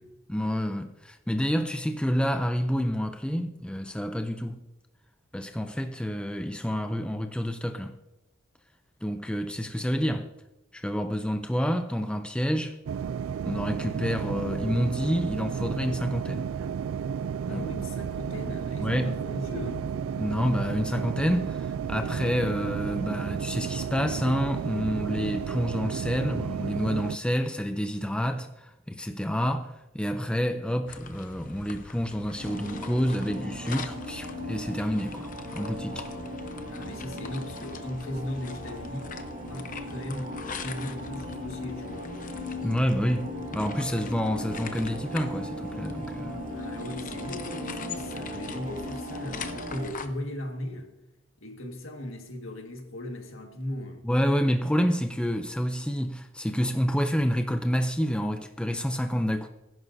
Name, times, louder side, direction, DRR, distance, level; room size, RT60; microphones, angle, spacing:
voice 1, 0.3-4.6 5.3-8.0 9.0-10.3 10.7-12.8 13.5-16.5 17.5-17.7 18.8-19.2 20.2-36.1 42.6-46.4 54.0-59.5, equal, 5° left, 0.5 m, -28 dB
sound 1, 12.9-27.2, right 7 dB, 80° right, 0.3 m, -32 dB
voice 2, 17.5-19.9 36.7-39.2 39.4-40.3 40.6-42.1 46.5-50.9 51.4-54.1, left 1 dB, 75° left, 1.8 m, -37 dB
sound 2, 30.9-50.1, left 5 dB, 40° left, 0.8 m, -43 dB
sound 3, 32.4-49.9, left 1 dB, 50° right, 3.2 m, -38 dB
20.0 x 11.0 x 2.7 m
head